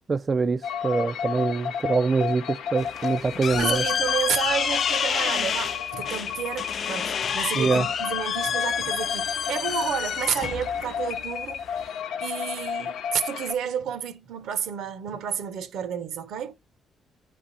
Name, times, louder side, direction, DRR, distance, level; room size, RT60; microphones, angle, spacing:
voice 1, 0.0-3.8 7.5-7.9, right 4 dB, 35° right, 0.4 m, -24 dB
sound 1, 0.6-13.5, left 8 dB, 90° left, 0.8 m, -32 dB
sound 2, 2.8-11.9, left 7 dB, 55° left, 0.3 m, -29 dB
voice 2, 3.6-16.5, right 8 dB, 80° right, 1.1 m, -31 dB
9.8 x 3.8 x 4.1 m
cardioid pair, 90°, 0 cm